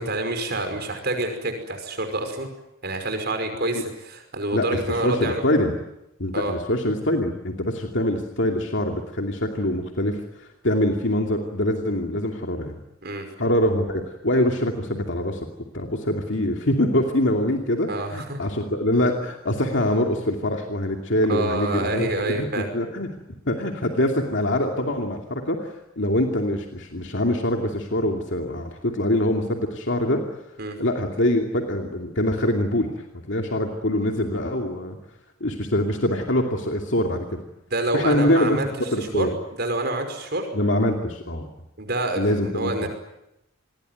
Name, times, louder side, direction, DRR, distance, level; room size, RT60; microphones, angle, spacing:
voice 1, 0.0-2.5 2.8-5.4 6.3-6.5 13.0-13.3 17.9-18.4 21.3-22.7 30.6-30.8 37.7-38.7 39.1-40.5 41.8-42.9, right 2 dB, 50° right, 6 dB, 5.5 m, -27 dB
voice 2, 4.5-5.8 6.2-12.8 13.4-15.5 15.7-23.1 23.5-30.2 30.8-35.0 35.4-37.4 37.9-38.6 38.9-39.3 40.5-41.5 42.2-42.9, left 1 dB, 60° left, 2 dB, 2.6 m, -24 dB
28.0 x 21.5 x 9.4 m, 0.87 s
head